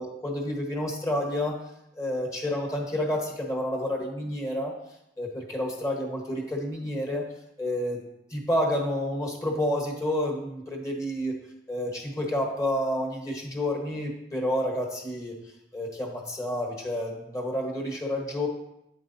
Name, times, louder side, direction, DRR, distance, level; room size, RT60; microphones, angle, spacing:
voice 1, 0.0-1.6 1.9-4.7 5.2-7.3 7.6-8.0 8.3-11.4 11.7-15.3 15.7-18.5, left 1 dB, 20° left, 0 dB, 1.2 m, -29 dB
8.6 x 7.8 x 2.7 m, 0.84 s
head